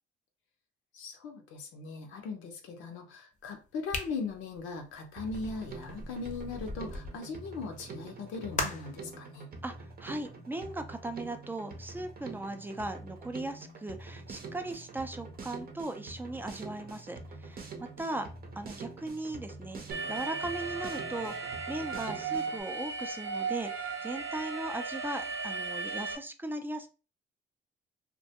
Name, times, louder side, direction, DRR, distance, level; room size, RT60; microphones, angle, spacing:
voice 1, 0.9-9.5, left 4 dB, 85° left, 3 dB, 0.6 m, -39 dB
sound 1, 3.9-7.2 8.5-9.0, left 3 dB, 40° left, 0.6 m, -38 dB
Drum kit, 5.2-22.6, right 3 dB, 50° right, 0.7 m, -46 dB
voice 2, 9.6-18.3 18.6-26.9, right 2 dB, 10° right, 6 dB, 0.4 m, -38 dB
Alarm, 19.9-26.2, right 4 dB, 90° right, 0.6 m, -36 dB
2.3 x 2.2 x 2.8 m, 0.33 s
cardioid pair, 90°, 20 cm